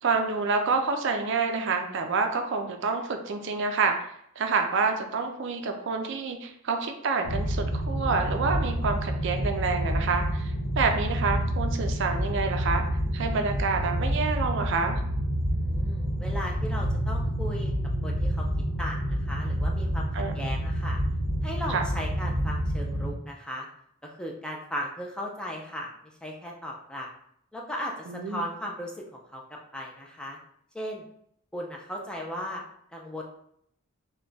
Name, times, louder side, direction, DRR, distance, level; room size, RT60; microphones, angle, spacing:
voice 1, 0.0-12.8 13.1-15.0 20.1-20.3 21.7-21.8 28.1-28.4, right 4 dB, 60° right, 5 dB, 0.4 m, -28 dB
sound 1, 7.2-23.1, equal, 70° left, 0.9 m, -28 dB
voice 2, 15.5-17.7 18.0-18.5 18.8-21.0 21.4-23.7 24.0-25.9 26.2-27.1 27.5-27.9 28.2-28.9 29.3-29.4 29.7-30.4 30.7-31.1 31.5-32.6 32.9-33.2, equal, 5° left, -1 dB, 0.4 m, -36 dB
3.4 x 2.2 x 3.8 m, 0.69 s
head